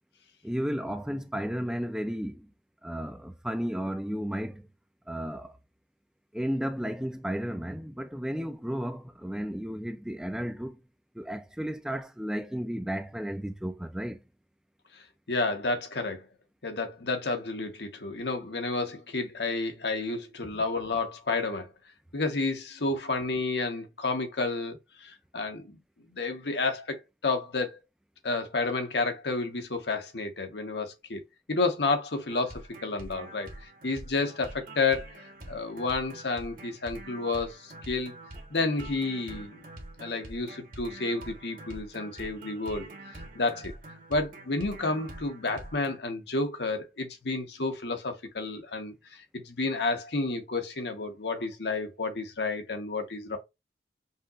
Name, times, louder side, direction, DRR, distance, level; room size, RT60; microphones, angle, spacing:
voice 1, 0.4-2.5 2.8-4.7 5.1-5.6 6.3-10.8 11.2-14.2, equal, 5° right, 0.4 m, -33 dB
voice 2, 15.3-16.3 16.6-21.7 22.1-25.7 26.1-27.8 28.2-31.2 31.5-33.5 33.8-38.1 38.5-39.6 40.0-42.9 43.3-43.7 44.1-53.4, left 3 dB, 75° left, 1.1 m, -31 dB
sound 1, 32.3-46.0, right 1 dB, 50° right, 1.2 m, -45 dB
5.4 x 2.9 x 2.4 m
head